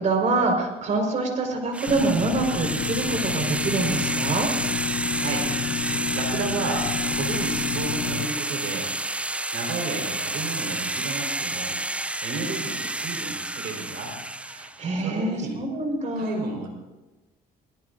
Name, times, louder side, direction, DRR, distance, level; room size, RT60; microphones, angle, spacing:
voice 1, 0.0-4.5 14.6-16.5, right 3 dB, 45° right, 3 dB, 4.7 m, -25 dB
sound 1, 1.7-14.8, right 2 dB, 5° right, 0.5 m, -29 dB
sound 2, 1.9-8.3, left 8 dB, 55° left, 0.7 m, -30 dB
voice 2, 5.2-5.6 6.1-8.9 9.5-11.8 12.2-14.2 15.0-15.6 16.2-16.7, right 4 dB, 75° right, 2 dB, 4.5 m, -32 dB
22.0 x 21.0 x 2.6 m, 1.1 s
cardioid pair, 110°, 17 cm